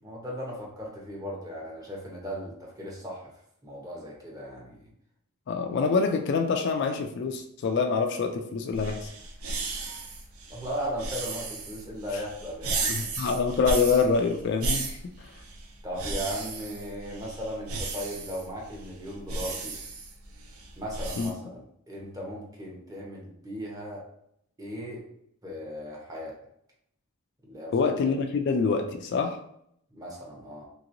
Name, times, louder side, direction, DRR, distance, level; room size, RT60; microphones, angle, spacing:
voice 1, 0.0-3.3 3.6-4.9 10.5-13.1 15.8-19.8 20.8-24.0 24.6-25.0 25.4-26.4 27.4-27.7 29.9-30.7, equal, 15° right, -3 dB, 0.8 m, -37 dB
voice 2, 5.5-9.1 12.9-15.1 21.2-21.3 27.7-29.4, left 5 dB, 50° left, 5 dB, 0.3 m, -26 dB
sound 1, 8.7-21.3, right 3 dB, 75° right, 0.5 m, -35 dB
3.2 x 2.9 x 2.6 m, 0.72 s
head